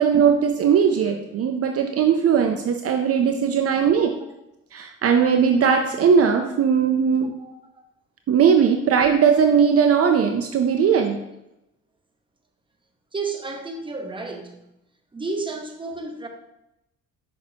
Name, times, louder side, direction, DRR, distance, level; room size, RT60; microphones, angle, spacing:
voice 1, 0.0-4.1 4.7-7.3 8.3-11.2, right 7 dB, 50° right, 4 dB, 0.6 m, -19 dB
voice 2, 13.1-14.6 15.1-16.3, right 3 dB, 15° right, 3 dB, 0.9 m, -31 dB
6.0 x 5.9 x 2.8 m, 0.88 s
cardioid pair, 90°, 30 cm